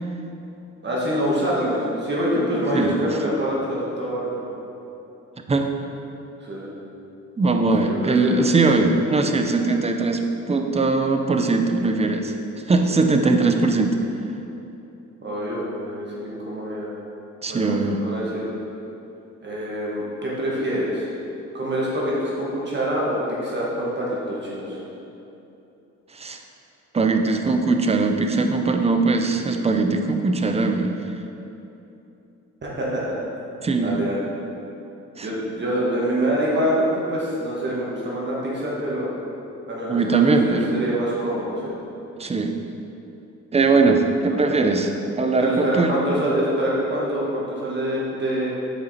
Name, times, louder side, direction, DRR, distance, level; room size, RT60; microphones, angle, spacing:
voice 1, 0.8-4.5 6.4-6.7 7.9-8.4 15.2-16.9 17.5-18.4 19.4-21.1 21.5-24.8 32.6-33.1 33.8-34.3 35.2-39.1 39.7-41.7 44.3-44.6 45.4-48.5, equal, 35° right, -6 dB, 1.5 m, -25 dB
voice 2, 7.4-10.2 10.5-12.4 12.7-13.9 17.4-18.0 26.1-26.4 26.9-30.9 33.6-34.0 35.2-35.3 39.9-40.8 42.2-42.6 43.5-44.9 45.2-45.9, right 3 dB, 20° right, 5 dB, 0.6 m, -20 dB
6.9 x 4.9 x 4.2 m, 2.9 s
cardioid pair, 90°, 30 cm